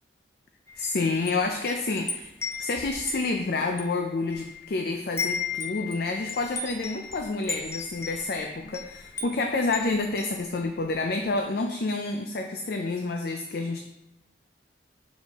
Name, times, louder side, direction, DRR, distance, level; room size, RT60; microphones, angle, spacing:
Wind chime, 0.7-4.7 5.0-10.9, left 5 dB, 15° left, 0.6 m, -36 dB
voice 1, 0.8-2.3 2.6-13.8, left 3 dB, 60° left, 4 dB, 0.4 m, -29 dB
6.7 x 4.1 x 3.5 m, 0.93 s
head